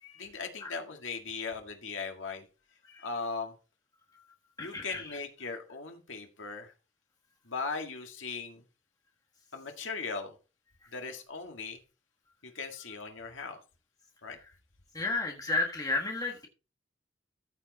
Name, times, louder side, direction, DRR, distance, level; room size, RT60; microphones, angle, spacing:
voice 1, 0.0-2.5 2.9-3.5 4.6-6.7 7.5-8.6 9.5-10.3 10.9-11.8 12.4-13.6 14.2-14.4, left 4 dB, 80° left, 3 dB, 1.9 m, -38 dB
voice 2, 4.6-5.0 14.9-16.5, left 3 dB, 20° left, 1 dB, 1.4 m, -32 dB
14.0 x 5.1 x 4.1 m, 0.33 s
head